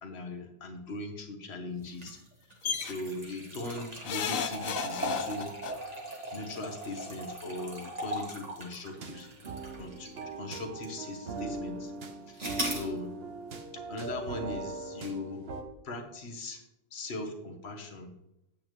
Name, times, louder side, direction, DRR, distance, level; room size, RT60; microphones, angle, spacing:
voice 1, 0.0-2.5 2.8-5.5 6.3-9.3 9.8-11.9 12.3-13.1 13.7-15.5 15.8-16.6 16.9-18.1, left 2 dB, 55° left, 5 dB, 1.4 m, -39 dB
sound 1, 1.9-10.3 10.8-10.9 12.4-12.9, right 1 dB, 30° right, 1.6 m, -39 dB
sound 2, 2.6-2.9 4.0-5.7 6.9-7.0 7.3-7.4, left 7 dB, 75° left, 1.1 m, -33 dB
sound 3, 9.0-15.6, right 3 dB, 50° right, 1.1 m, -40 dB
8.7 x 8.5 x 3.1 m, 0.84 s
omnidirectional pair, 1.4 m